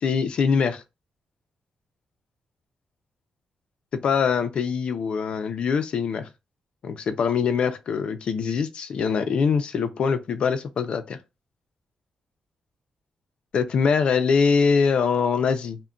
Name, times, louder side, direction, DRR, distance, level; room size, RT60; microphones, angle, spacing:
voice 1, 0.0-0.8 3.9-6.3 6.8-11.2 13.5-15.8, left 6 dB, 50° left, 0.4 m, -23 dB
2.3 x 2.1 x 3.6 m
wide cardioid pair, 170°, 2 cm